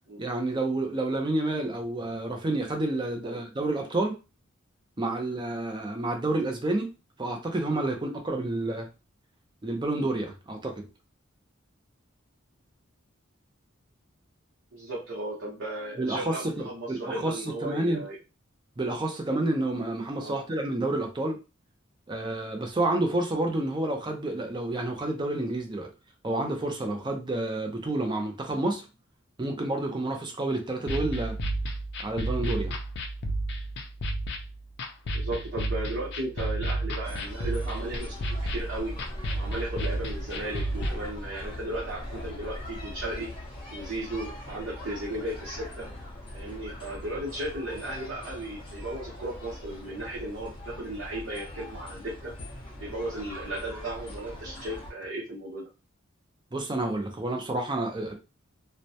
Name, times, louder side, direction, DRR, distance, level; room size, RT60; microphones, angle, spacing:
voice 1, 0.2-4.1 5.0-6.9 7.2-8.9 9.6-10.9 16.0-18.0 18.8-21.4 22.1-25.9 26.2-28.8 29.4-31.4 32.0-32.8 56.5-58.1, right 2 dB, 25° right, 0.5 m, -29 dB
voice 2, 14.7-18.2 20.2-20.4 35.1-38.9 39.3-43.3 43.7-45.9 46.3-52.3 52.8-55.7, right 1 dB, 65° right, 0.8 m, -35 dB
sound 1, 30.9-40.9, right 1 dB, 55° left, 0.4 m, -32 dB
sound 2, 37.0-54.9, left 1 dB, 25° left, 0.8 m, -41 dB
2.1 x 2.1 x 2.7 m
head